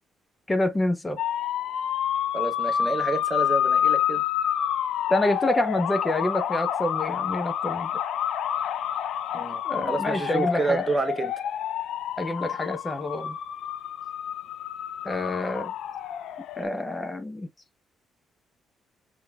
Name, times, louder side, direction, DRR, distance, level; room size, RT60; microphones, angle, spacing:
voice 1, 0.5-1.2 5.1-7.9 9.6-10.9 12.2-13.4 15.0-15.7 16.6-17.5, left 1 dB, 20° left, 0.8 m, -27 dB
sound 1, 1.2-16.6, left 10 dB, 75° left, 0.4 m, -28 dB
voice 2, 2.3-4.2 9.3-9.6 9.9-11.3, right 3 dB, 20° right, 0.8 m, -28 dB
5.6 x 3.2 x 2.3 m
cardioid pair, 90°, 0 cm